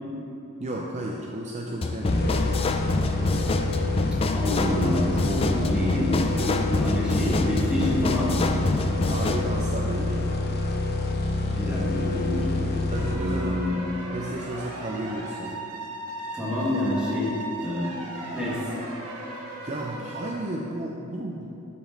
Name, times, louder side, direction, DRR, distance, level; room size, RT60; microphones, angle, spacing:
voice 1, 0.6-2.6 9.1-10.1 12.9-13.6 14.1-15.6 19.6-21.5, right 1 dB, 30° right, -1 dB, 0.5 m, -33 dB
sound 1, 1.8-9.5, left 2 dB, 25° left, 0.3 m, -27 dB
sound 2, 2.1-13.7, left 2 dB, 45° left, 0.8 m, -27 dB
voice 2, 4.3-8.5 11.6-13.8 16.3-17.4 17.6-17.9 18.3-18.6, left 1 dB, 5° right, -7 dB, 1.8 m, -27 dB
sound 3, 12.9-20.3, right 2 dB, 85° right, 1.2 m, -38 dB
12.5 x 5.1 x 3.8 m, 3.0 s
head